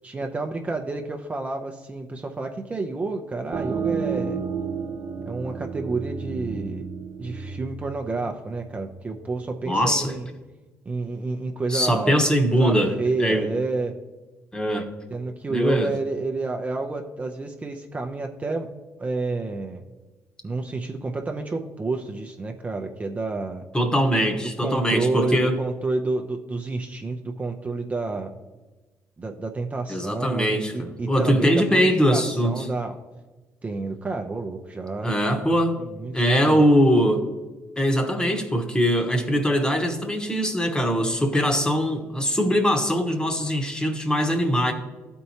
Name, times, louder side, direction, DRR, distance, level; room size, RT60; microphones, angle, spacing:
voice 1, 0.0-4.4 5.3-6.8 7.2-10.2 10.9-14.0 15.1-18.7 19.0-19.8 20.4-23.6 24.6-28.3 29.2-32.9 33.6-35.2 35.8-36.2 36.5-36.7, right 3 dB, 25° right, 3 dB, 0.6 m, -29 dB
sound 1, 3.5-8.9, right 6 dB, 70° right, 0.9 m, -31 dB
voice 2, 9.6-10.1 11.7-13.5 14.5-14.9 15.5-15.9 23.7-25.6 29.9-32.6 35.0-35.8 36.1-37.3 37.8-44.7, equal, 15° left, 5 dB, 1.1 m, -22 dB
12.5 x 4.5 x 2.8 m, 1.2 s
cardioid pair, 80°, 6 cm